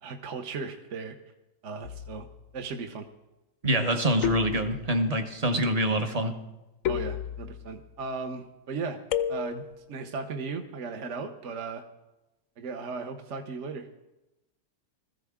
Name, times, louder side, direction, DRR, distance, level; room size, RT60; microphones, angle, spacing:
voice 1, 0.0-1.1 1.6-2.3 2.5-3.1 6.9-9.0 9.3-11.8 12.6-13.9, right 4 dB, 50° right, 4 dB, 1.0 m, -36 dB
sound 1, 1.8-2.4 4.2-5.2 6.8-7.8 9.1-9.8, left 10 dB, 70° left, 0.8 m, -32 dB
voice 2, 3.6-6.3, right 1 dB, 30° right, 6 dB, 0.7 m, -25 dB
20.5 x 14.5 x 3.6 m, 0.99 s
omnidirectional pair, 2.0 m